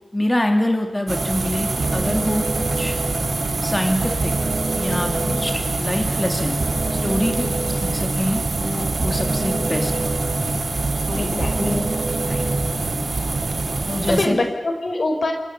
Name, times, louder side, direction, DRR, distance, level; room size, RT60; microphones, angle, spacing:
voice 1, 0.1-2.5 2.8-3.0 3.6-4.3 4.7-6.6 7.0-10.2 11.1-11.9 12.2-12.4 13.8-14.4, left 1 dB, 20° left, 4 dB, 3.3 m, -25 dB
sound 1, 1.1-14.3, right 3 dB, 55° right, 1.6 m, -25 dB
sound 2, 1.8-13.8, right 2 dB, 85° right, 4.9 m, -28 dB
voice 2, 11.2-11.5 14.1-15.3, left 2 dB, 65° left, 4 dB, 5.6 m, -24 dB
28.0 x 27.0 x 7.1 m, 1.2 s
wide cardioid pair, 90°, 0 cm